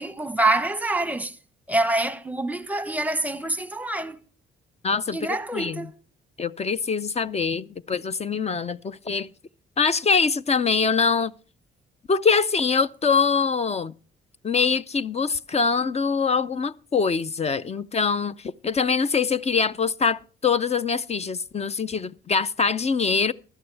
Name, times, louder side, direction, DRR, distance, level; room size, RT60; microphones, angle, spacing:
voice 1, 0.0-1.4 1.7-4.2 5.1-5.9, right 2 dB, 5° right, 0.9 m, -26 dB
voice 2, 4.8-5.2 5.5-5.8 6.4-9.3 9.8-11.3 12.1-13.9 14.4-23.3, left 5 dB, 30° left, 0.5 m, -23 dB
15.5 x 12.0 x 3.4 m
cardioid pair, 105°, 21 cm